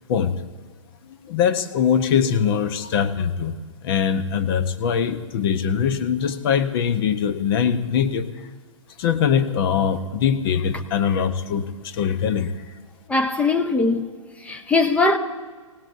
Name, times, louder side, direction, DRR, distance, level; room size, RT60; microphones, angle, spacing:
voice 1, 1.1-3.6 3.8-8.3 9.0-12.5, left 7 dB, 45° left, 1.0 m, -22 dB
voice 2, 13.1-14.0 14.4-15.2, left 3 dB, 10° left, 0.8 m, -20 dB
26.5 x 17.5 x 2.7 m
hypercardioid pair, 125°, 17 cm